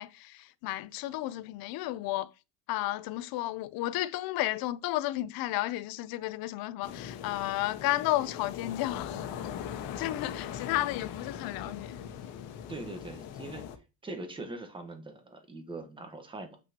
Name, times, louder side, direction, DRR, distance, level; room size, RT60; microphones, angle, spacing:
voice 1, 0.0-2.3 2.7-9.3 10.0-12.0, left 16 dB, 55° left, 0.7 m, -32 dB
sound 1, 6.8-13.8, left 9 dB, 80° left, 1.4 m, -40 dB
voice 2, 12.7-13.7 14.0-16.6, right 2 dB, 10° right, 1.3 m, -42 dB
7.9 x 6.0 x 2.9 m
cardioid pair, 160°, 43 cm